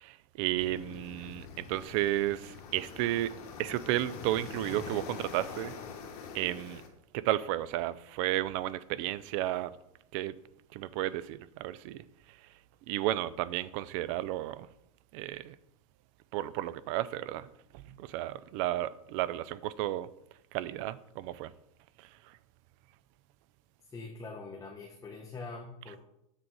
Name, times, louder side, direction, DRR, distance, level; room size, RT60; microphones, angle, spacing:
voice 1, 0.0-3.3 3.6-5.7 6.3-6.8 7.1-9.7 10.1-10.3 10.7-12.4 12.9-14.7 15.1-15.6 16.3-20.1 20.5-21.5 22.0-22.4, right 14 dB, 55° right, 0.4 m, -33 dB
sound 1, 0.6-6.9, left 6 dB, 70° left, 1.2 m, -44 dB
voice 2, 23.9-26.0, left 3 dB, 15° left, 0.9 m, -43 dB
7.6 x 3.7 x 4.6 m
hypercardioid pair, 105°, 20 cm